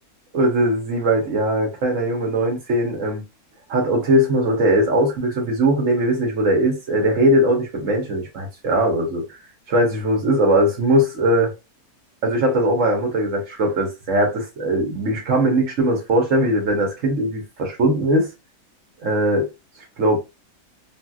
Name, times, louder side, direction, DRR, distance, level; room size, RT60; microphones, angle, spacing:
voice 1, 0.3-3.2 3.7-9.2 9.7-11.5 12.2-18.3 19.0-19.5 20.0-20.2, right 1 dB, 60° right, 1.4 m, -20 dB
3.2 x 2.7 x 2.3 m
omnidirectional pair, 1.6 m